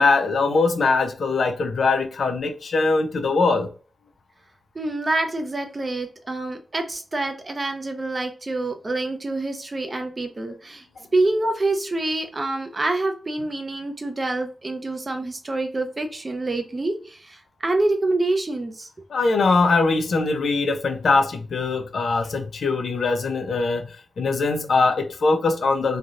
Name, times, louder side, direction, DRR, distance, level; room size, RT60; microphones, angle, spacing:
voice 1, 0.0-3.7 19.1-26.0, left 3 dB, 75° left, 0.5 m, -21 dB
voice 2, 4.7-10.8 11.1-18.9, right 2 dB, 35° right, 0.6 m, -26 dB
3.2 x 2.7 x 2.4 m
wide cardioid pair, 85°, 0 cm